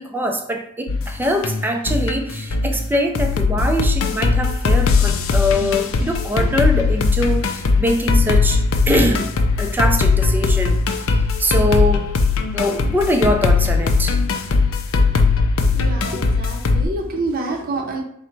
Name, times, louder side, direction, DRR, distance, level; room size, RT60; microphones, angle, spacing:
voice 1, 0.0-9.3 9.6-10.8 11.4-12.1 12.5-14.2, equal, 10° right, 4 dB, 0.4 m, -22 dB
sound 1, 0.9-16.8, left 4 dB, 75° left, 0.5 m, -19 dB
voice 2, 15.7-18.0, right 2 dB, 45° right, 1 dB, 0.7 m, -27 dB
3.8 x 2.1 x 4.4 m, 0.72 s
head